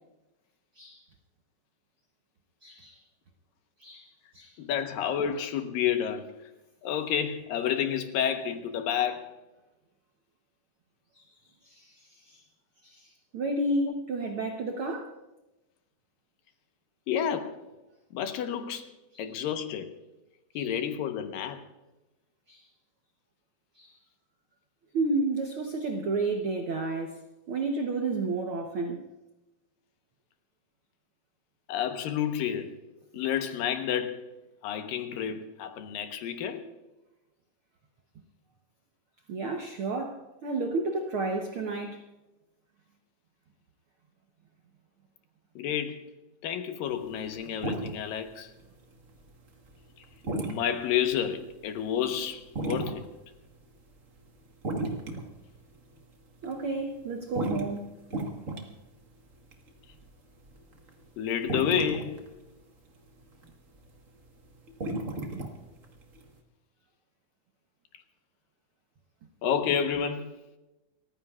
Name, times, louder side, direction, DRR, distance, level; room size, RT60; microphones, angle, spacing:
voice 1, 2.6-3.0 3.8-4.5 11.1-11.2 11.6-12.4 12.8-15.1 19.1-19.2 20.5-20.7 22.5-22.6 23.8-23.9 24.9-27.2 27.5-29.0 39.3-42.0 56.4-57.8, right 2 dB, 80° right, 1.2 m, -31 dB
voice 2, 4.6-6.3 6.8-9.4 13.9-14.0 17.1-17.6 18.1-18.9 19.2-20.0 20.5-21.6 31.7-32.8 33.1-34.3 34.6-36.6 45.6-46.1 46.4-48.5 50.4-53.1 61.2-62.2 69.4-70.4, left 9 dB, 85° left, 2.8 m, -30 dB
sound 1, 46.9-48.3 48.6-53.2 53.5-54.2 54.5-56.0 56.4-57.0 57.3-61.1 61.4-62.6 63.0-63.9 64.2-66.4, right 2 dB, 65° right, 0.8 m, -34 dB
29.0 x 15.0 x 2.4 m
omnidirectional pair, 3.9 m